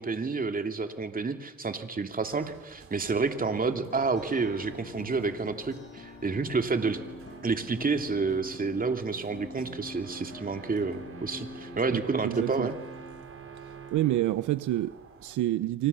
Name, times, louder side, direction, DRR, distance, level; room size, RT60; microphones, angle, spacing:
voice 1, 0.0-7.0 7.4-12.7, right 4 dB, 30° right, 2.7 m, -29 dB
sound 1, 2.3-15.4, right 5 dB, 45° right, 4.9 m, -49 dB
sound 2, 3.2-13.2, left 3 dB, 35° left, 5.2 m, -45 dB
voice 2, 11.9-12.7 13.6-15.9, right 14 dB, 80° right, 0.9 m, -29 dB
30.0 x 25.0 x 7.0 m
cardioid pair, 90°, 30 cm